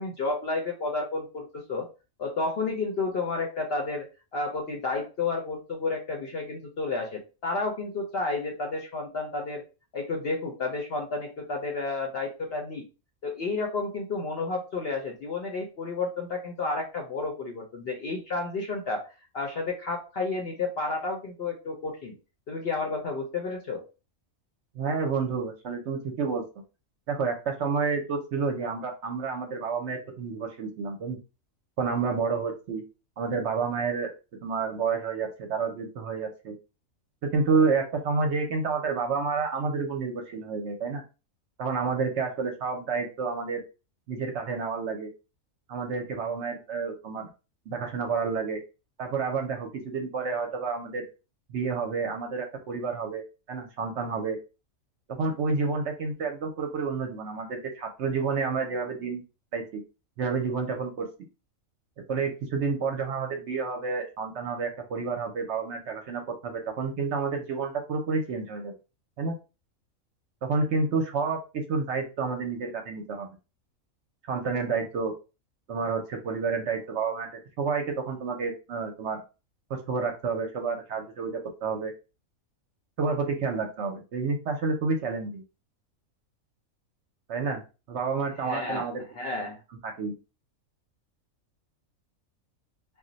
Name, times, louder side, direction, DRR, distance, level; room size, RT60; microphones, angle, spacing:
voice 1, 0.0-1.9 2.2-9.6 9.9-12.9 13.2-19.0 19.3-22.1 22.5-23.8 88.4-88.9 89.1-89.6, left 3 dB, 60° left, 1 dB, 0.7 m, -31 dB
voice 2, 24.7-26.4 27.1-31.2 31.8-32.8 33.2-34.1 34.4-36.5 37.2-41.0 41.6-43.6 44.1-45.1 45.7-47.3 47.7-48.6 49.0-51.1 51.5-54.4 55.1-59.2 59.5-59.8 60.2-61.1 62.1-68.7 69.2-69.3 70.4-73.3 74.3-75.1 75.7-77.3 77.6-79.2 79.7-81.9 83.0-85.4 87.3-87.6 87.9-89.0 89.8-90.1, right 4 dB, 65° right, 3 dB, 0.8 m, -29 dB
2.4 x 2.1 x 3.8 m, 0.31 s
omnidirectional pair, 1.5 m